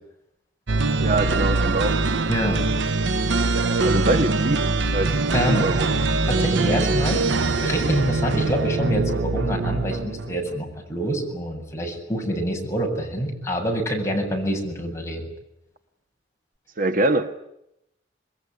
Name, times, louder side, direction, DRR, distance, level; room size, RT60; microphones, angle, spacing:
sound 1, 0.7-10.5, right 3 dB, 75° right, 1.0 m, -23 dB
voice 1, 1.0-1.9 3.8-5.9 16.8-17.4, right 2 dB, 50° right, 8 dB, 1.5 m, -24 dB
voice 2, 2.3-2.6 3.7-3.9 5.3-5.7 6.2-7.3 7.6-15.3, equal, 15° left, 0 dB, 7.8 m, -26 dB
27.0 x 22.0 x 9.8 m, 0.84 s
head